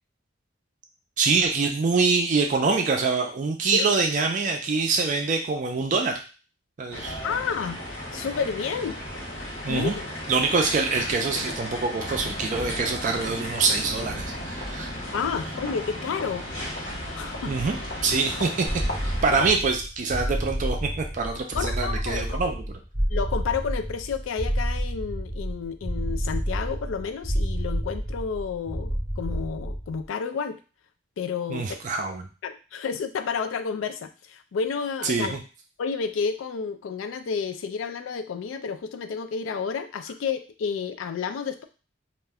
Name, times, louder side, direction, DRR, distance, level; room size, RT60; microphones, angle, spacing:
voice 1, 1.2-6.2 6.8-7.2 9.6-10.0 10.3-14.9 17.5-18.7 19.0-22.8 31.5-32.3 35.0-35.4, right 4 dB, 40° right, 3 dB, 0.4 m, -25 dB
sound 1, 6.9-19.5, left 1 dB, 65° left, 1.0 m, -34 dB
voice 2, 7.2-7.8 8.1-9.0 9.7-10.1 15.1-16.4 17.1-17.6 19.3-19.4 21.5-22.5 23.1-30.6 31.2-31.7 32.4-35.4 35.8-41.6, left 6 dB, 85° left, 9 dB, 0.3 m, -30 dB
sound 2, 18.7-30.0, equal, 5° right, 0.7 m, -29 dB
2.4 x 2.1 x 3.4 m, 0.34 s
head